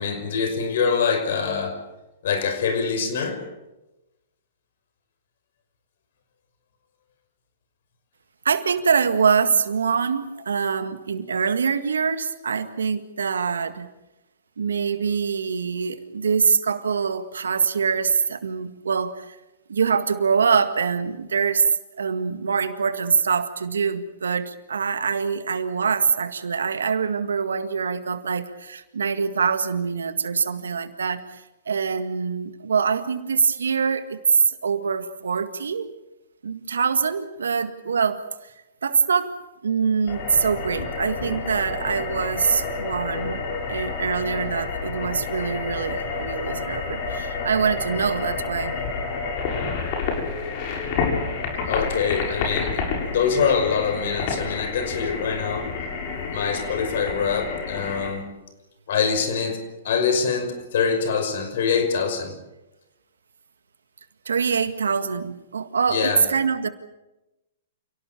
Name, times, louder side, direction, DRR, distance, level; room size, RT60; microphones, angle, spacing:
voice 1, 0.0-1.8 2.2-3.4 51.7-55.7 56.3-58.2 58.9-62.3 65.9-66.3, left 6 dB, 65° left, 8 dB, 5.9 m, -24 dB
voice 2, 8.5-13.9 14.6-19.4 19.7-21.6 22.0-35.9 36.4-38.2 38.8-39.3 39.6-43.4 43.7-48.7 64.3-66.7, right 6 dB, 85° right, 11 dB, 1.9 m, -24 dB
sound 1, 40.1-58.1, left 4 dB, 50° left, 7.9 m, -29 dB
28.5 x 18.0 x 7.2 m, 0.99 s
hypercardioid pair, 120°, 0 cm